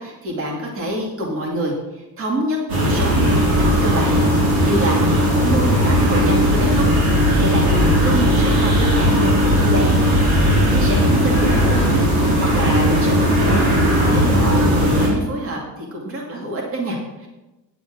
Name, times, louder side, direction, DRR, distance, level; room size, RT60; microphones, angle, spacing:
voice 1, 0.0-3.5 3.8-5.0 5.4-6.9 7.4-9.9 10.7-17.3, right 1 dB, 35° right, 0 dB, 2.3 m, -27 dB
sound 1, 2.7-15.1, equal, 60° right, 3.7 m, -17 dB
9.6 x 7.7 x 6.1 m, 1.0 s
cardioid pair, 175°, 40 cm